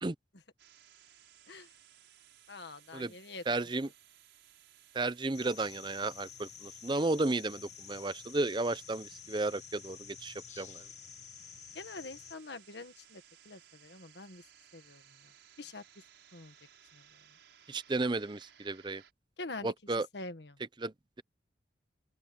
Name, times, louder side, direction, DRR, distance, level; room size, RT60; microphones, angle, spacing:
sound 1, 0.6-19.1, right 10 dB, 80° right, 5.8 m, -61 dB
voice 1, 2.5-3.4 11.8-14.4 14.7-15.3 15.6-15.8 16.3-16.5 16.9-17.0 19.4-19.7 20.1-20.6, left 3 dB, 70° left, 1.7 m, -45 dB
voice 2, 3.5-3.9 4.9-10.8 17.7-19.0 19.6-20.1 20.8-20.9, right 2 dB, 25° right, 0.6 m, -33 dB
sound 2, 5.3-12.4, left 9 dB, 40° left, 1.2 m, -50 dB
open air
head